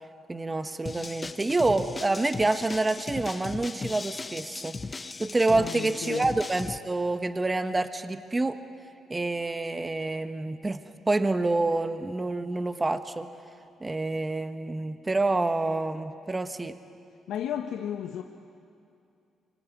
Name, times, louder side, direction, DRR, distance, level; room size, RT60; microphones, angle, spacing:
voice 1, 0.3-4.8 5.2-8.6 9.1-10.8 11.1-13.3 13.8-16.7, right 2 dB, 20° right, 9 dB, 1.3 m, -27 dB
sound 1, 0.9-6.8, left 3 dB, 25° left, 0.7 m, -37 dB
voice 2, 5.5-6.3 17.3-18.2, left 9 dB, 85° left, 4 dB, 1.1 m, -33 dB
25.5 x 24.0 x 9.5 m, 2.5 s
cardioid pair, 90°, 0 cm